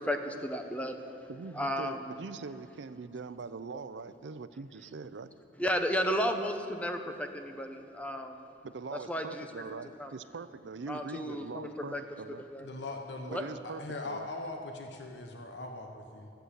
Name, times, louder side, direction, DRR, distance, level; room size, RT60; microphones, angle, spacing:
voice 1, 0.0-1.2 1.5-2.1 3.7-3.8 5.6-8.4 8.9-9.5 10.0-10.1 10.9-12.0 12.5-12.7 13.3-13.4, equal, 10° left, 5 dB, 0.8 m, -33 dB
voice 2, 1.3-5.4 8.6-12.4 13.3-14.3, right 4 dB, 80° right, 14 dB, 0.5 m, -42 dB
voice 3, 12.6-16.3, left 2 dB, 75° left, 3 dB, 0.9 m, -41 dB
14.0 x 7.9 x 8.2 m, 2.7 s
head